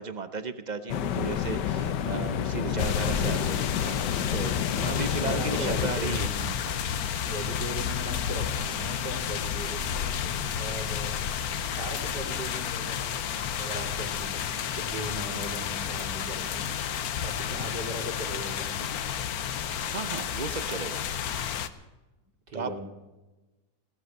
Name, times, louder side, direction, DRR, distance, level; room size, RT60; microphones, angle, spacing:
voice 1, 0.0-6.3 6.6-6.8 19.9-21.0 22.5-22.8, right 4 dB, 45° right, 11 dB, 0.5 m, -35 dB
sound 1, 0.9-5.9, left 9 dB, 80° left, 1.4 m, -30 dB
voice 2, 2.7-3.5 4.9-6.6 7.3-14.4 14.7-18.9 22.5-22.8, equal, 80° right, -2 dB, 4.8 m, -38 dB
sound 2, 2.8-21.7, left 8 dB, 65° left, 1.3 m, -31 dB
17.0 x 13.0 x 6.5 m, 1.1 s
omnidirectional pair, 1.8 m